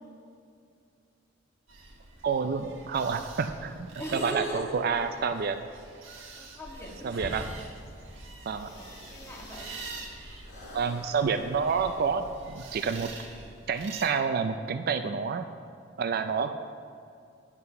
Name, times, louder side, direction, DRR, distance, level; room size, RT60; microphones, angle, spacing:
sound 1, 1.7-14.1, right 3 dB, 75° right, 1.4 m, -47 dB
voice 1, 2.2-5.6 7.0-7.5 8.5-8.7 10.7-13.1 13.7-15.5 16.0-16.5, right 5 dB, 50° right, 9 dB, 0.4 m, -29 dB
voice 2, 4.0-4.8 6.4-7.4 8.7-9.8, right 1 dB, 15° left, -2 dB, 1.7 m, -38 dB
sound 2, 6.6-13.4, equal, 60° left, 3.0 m, -46 dB
9.7 x 7.4 x 5.7 m, 2.4 s
head